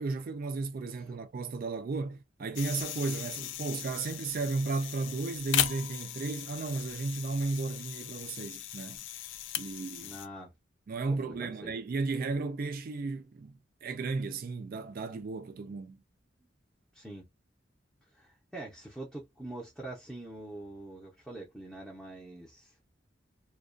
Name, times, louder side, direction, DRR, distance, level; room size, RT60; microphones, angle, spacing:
voice 1, 0.0-9.0 9.6-10.2 10.9-16.0, right 3 dB, 50° right, 0.4 m, -34 dB
sound 1, 2.6-10.3, left 12 dB, 80° left, 0.3 m, -37 dB
voice 2, 10.0-10.5 11.1-11.7 16.9-17.3 18.1-22.7, right 1 dB, ahead, 0.6 m, -44 dB
2.3 x 2.2 x 2.4 m
head